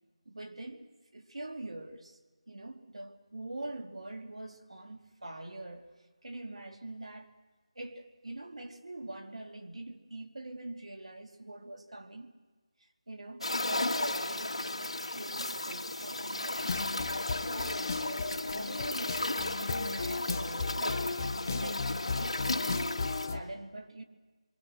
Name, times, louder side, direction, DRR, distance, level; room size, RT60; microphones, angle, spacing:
voice 1, 0.2-2.2 2.5-5.9 6.2-7.3 7.7-12.3 12.8-16.8 17.4-24.0, right 2 dB, 70° right, 2.8 m, -44 dB
sound 1, 13.4-23.3, left 2 dB, 70° left, 2.6 m, -35 dB
sound 2, 16.6-23.4, left 4 dB, 30° left, 0.9 m, -35 dB
27.0 x 24.0 x 6.4 m
figure-of-eight pair, 170°, 3 cm